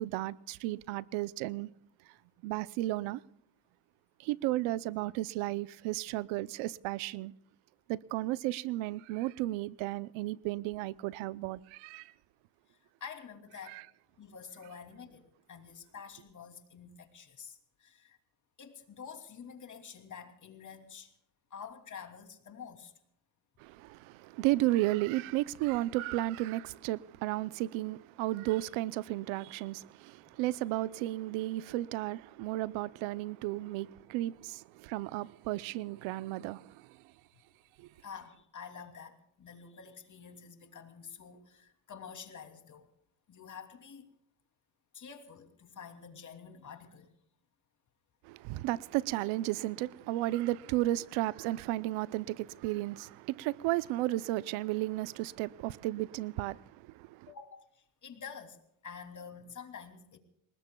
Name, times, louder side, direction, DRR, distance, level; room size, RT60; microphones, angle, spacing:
voice 1, 0.0-1.7 2.4-3.2 4.2-7.3 7.9-12.1 13.7-13.8 23.6-37.0 37.8-37.9 48.2-57.3, right 17 dB, 75° right, 0.7 m, -34 dB
voice 2, 12.7-13.8 14.2-18.2 18.6-21.1 21.5-22.9 38.0-42.9 43.3-44.0 44.9-47.1 57.3-60.2, left 6 dB, 40° left, 2.8 m, -48 dB
27.5 x 20.0 x 2.3 m
cardioid pair, 105°, 48 cm